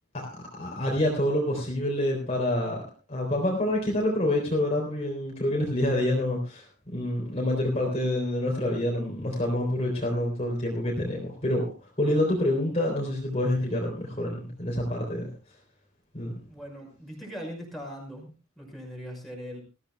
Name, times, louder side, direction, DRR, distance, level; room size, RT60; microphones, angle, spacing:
voice 1, 0.1-6.7 6.9-11.7 12.0-15.3 16.1-16.3, left 1 dB, 30° left, -1 dB, 3.6 m, -27 dB
voice 2, 16.5-19.6, equal, ahead, -2 dB, 6.0 m, -40 dB
21.0 x 15.0 x 2.3 m, 0.31 s
head